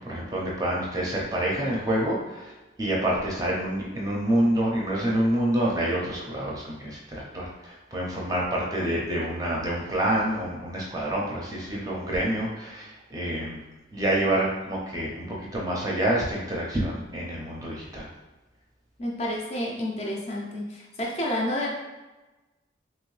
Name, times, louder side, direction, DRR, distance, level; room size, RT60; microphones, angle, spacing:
voice 1, 0.0-13.6 13.9-18.1, right 1 dB, 20° right, -3 dB, 0.5 m, -27 dB
voice 2, 19.0-21.7, left 1 dB, 35° left, -2 dB, 0.5 m, -30 dB
2.9 x 2.6 x 3.1 m, 1.1 s
head